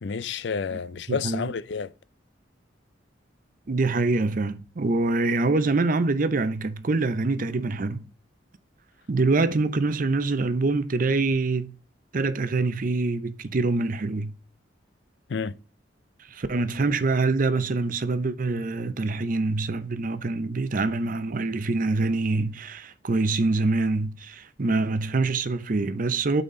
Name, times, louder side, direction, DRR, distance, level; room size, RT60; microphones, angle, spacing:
voice 1, 0.0-1.9 15.3-15.5, left 5 dB, 65° left, 0.5 m, -30 dB
voice 2, 1.1-1.5 3.7-8.0 9.1-11.8 12.1-14.3 16.3-26.4, right 3 dB, 45° right, 0.6 m, -25 dB
8.6 x 4.2 x 3.7 m
head